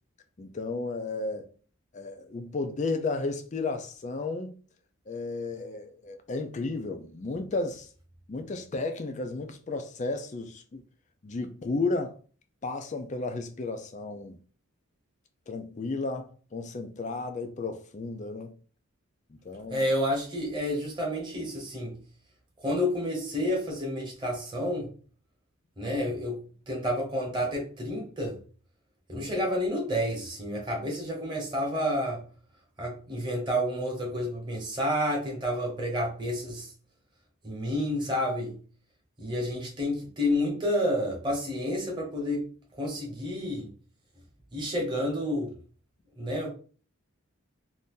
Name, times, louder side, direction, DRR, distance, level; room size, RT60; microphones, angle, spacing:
voice 1, 0.4-1.5 1.9-4.6 5.1-7.9 8.3-10.8 11.2-12.1 12.6-14.4 15.5-18.6 19.3-19.9, left 3 dB, 35° left, 0.4 m, -33 dB
voice 2, 19.7-22.0 22.6-24.9 25.8-28.4 29.1-32.3 32.8-36.7 37.4-38.6 39.2-42.5 42.8-43.7 44.5-45.6 46.2-46.5, equal, 20° right, 1.0 m, -30 dB
2.7 x 2.6 x 3.6 m
head